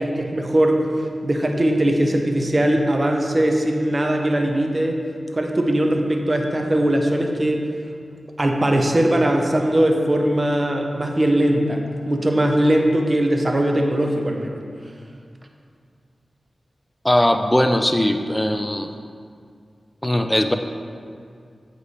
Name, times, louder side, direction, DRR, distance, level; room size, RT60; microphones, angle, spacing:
voice 1, 0.0-5.0 5.3-7.7 8.4-14.6, right 1 dB, 40° right, 2 dB, 0.9 m, -20 dB
voice 2, 17.0-18.9 20.0-20.6, left 1 dB, 15° left, 7 dB, 0.5 m, -19 dB
8.0 x 5.1 x 4.2 m, 2.2 s
cardioid pair, 45°, 0 cm